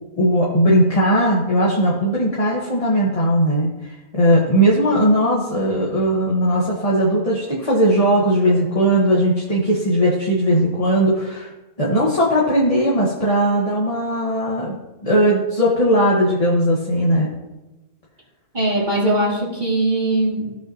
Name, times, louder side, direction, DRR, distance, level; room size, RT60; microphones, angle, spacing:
voice 1, 0.2-11.5 11.8-14.7 15.0-17.3, equal, 25° left, -5 dB, 1.4 m, -18 dB
voice 2, 18.5-20.6, right 1 dB, 30° right, -5 dB, 2.6 m, -20 dB
15.5 x 5.8 x 2.9 m, 1.1 s
omnidirectional pair, 1.6 m